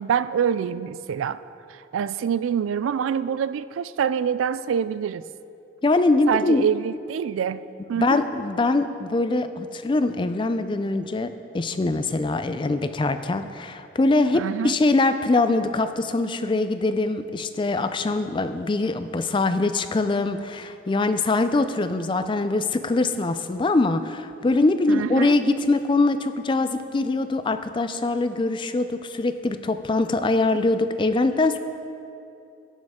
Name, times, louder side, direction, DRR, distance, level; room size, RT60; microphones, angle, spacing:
voice 1, 0.0-1.4 1.7-5.3 6.3-8.2 14.3-14.8 24.9-25.4, right 8 dB, 75° right, 15 dB, 0.3 m, -26 dB
voice 2, 5.8-6.7 8.0-31.6, left 2 dB, 25° left, 10 dB, 0.3 m, -23 dB
18.0 x 6.4 x 3.6 m, 2.6 s
head